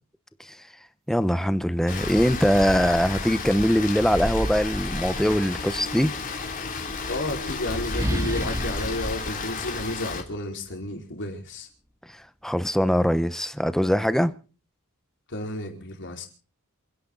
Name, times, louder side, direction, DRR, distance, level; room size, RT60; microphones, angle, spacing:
voice 1, 1.1-6.2 12.4-14.3, equal, ahead, 1.0 m, -22 dB
sound 1, 1.6-1.7 2.1-5.8 6.7-10.4, equal, 15° right, 2.1 m, -33 dB
Rain, 1.9-10.2, left 4 dB, 40° left, 3.3 m, -33 dB
voice 2, 7.1-11.7 15.3-16.3, left 1 dB, 55° left, 4.8 m, -32 dB
28.0 x 10.5 x 4.0 m
head